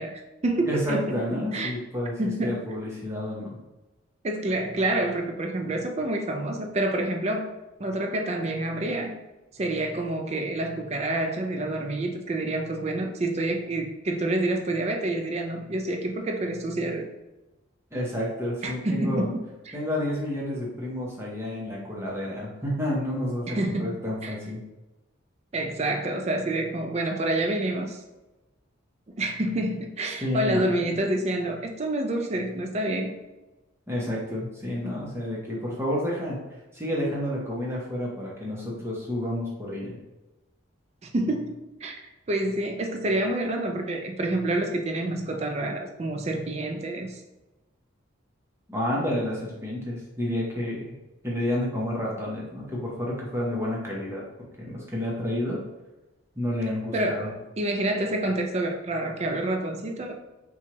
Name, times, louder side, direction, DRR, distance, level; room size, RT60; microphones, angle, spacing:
voice 1, 0.0-1.7 2.2-2.6 4.2-7.5 7.8-9.1 9.5-17.1 18.6-19.8 23.5-24.0 24.2-24.3 25.5-28.0 29.1-33.1 41.0-47.2 56.9-60.1, right 1 dB, 30° right, 4 dB, 0.4 m, -28 dB
voice 2, 0.6-2.1 2.4-3.5 17.9-19.3 19.7-24.6 30.2-30.8 33.9-36.4 36.7-40.0 48.7-50.9 51.2-54.2 54.6-55.6 56.4-57.3, left 1 dB, 15° right, -4 dB, 0.8 m, -30 dB
4.3 x 2.3 x 3.0 m, 1.1 s
head